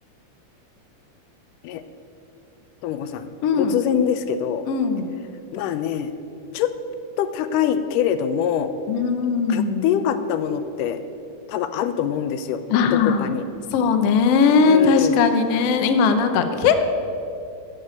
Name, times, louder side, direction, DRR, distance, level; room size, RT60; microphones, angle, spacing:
voice 1, 2.8-3.3 3.6-4.7 5.5-6.1 6.5-6.7 7.2-8.7 9.5-11.0 11.5-12.6 12.9-13.5 14.6-15.3, left 9 dB, 85° left, 10 dB, 2.2 m, -24 dB
voice 2, 3.4-3.8 4.7-5.1 8.9-9.9 12.7-13.3 13.7-16.9, left 5 dB, 65° left, 7 dB, 1.6 m, -19 dB
13.5 x 6.7 x 8.8 m, 2.6 s
omnidirectional pair, 3.7 m